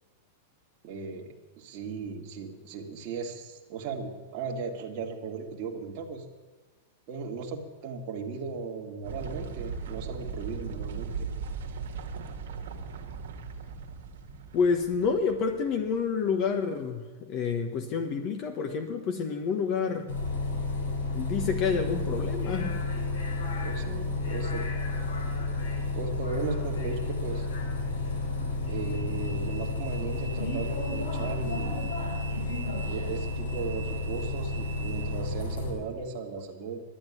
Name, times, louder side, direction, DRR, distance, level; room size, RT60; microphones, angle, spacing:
voice 1, 0.8-6.3 7.1-11.3 23.6-24.7 25.9-27.5 28.7-31.9 32.9-36.8, right 4 dB, 50° right, -1 dB, 1.9 m, -37 dB
sound 1, 9.0-16.4, right 5 dB, 75° right, 1.9 m, -38 dB
voice 2, 14.5-20.1 21.1-22.8, left 5 dB, 45° left, 5 dB, 1.4 m, -28 dB
Bus, 20.1-35.7, left 2 dB, 85° left, 4.6 m, -31 dB
11.5 x 9.0 x 9.6 m, 1.3 s
hypercardioid pair, 115°, 0 cm